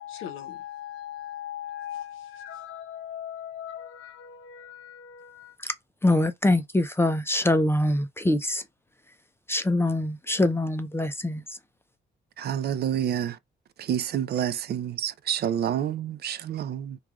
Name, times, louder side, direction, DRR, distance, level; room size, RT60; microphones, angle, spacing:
voice 1, 0.0-5.6, left 10 dB, 85° left, 0.9 m, -39 dB
voice 2, 6.0-8.6 9.5-11.4, left 1 dB, 10° left, 0.5 m, -24 dB
voice 3, 12.4-13.4 13.8-17.0, right 9 dB, 55° right, 0.4 m, -28 dB
3.2 x 2.4 x 2.3 m
cardioid pair, 90°, 20 cm